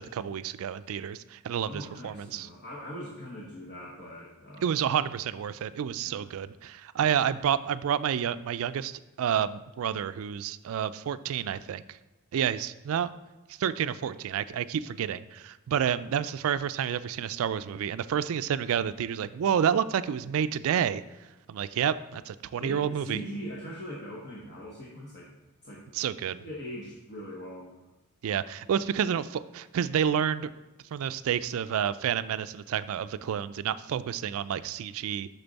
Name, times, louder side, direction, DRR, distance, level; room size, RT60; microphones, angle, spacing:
voice 1, 0.0-2.5 4.6-12.0 12.3-13.1 13.6-21.0 21.5-23.2 25.9-26.4 28.2-30.5 30.9-35.3, right 8 dB, 65° right, 14 dB, 0.3 m, -29 dB
voice 2, 1.7-4.8 6.0-6.3 22.6-25.3 25.6-25.8 26.4-27.8, equal, 50° left, -5 dB, 1.2 m, -41 dB
6.9 x 6.0 x 4.0 m, 1.1 s
head